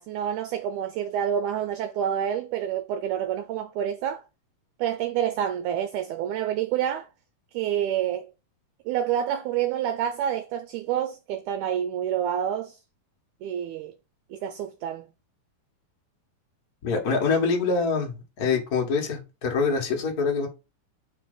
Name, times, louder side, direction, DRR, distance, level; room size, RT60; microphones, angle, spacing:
voice 1, 0.0-4.2 4.8-7.1 7.5-8.3 8.9-12.8 13.4-13.9 14.3-15.1, right 9 dB, 80° right, 1.8 m, -28 dB
voice 2, 16.8-20.5, left 4 dB, 60° left, 0.9 m, -25 dB
4.5 x 4.2 x 5.3 m
omnidirectional pair, 3.9 m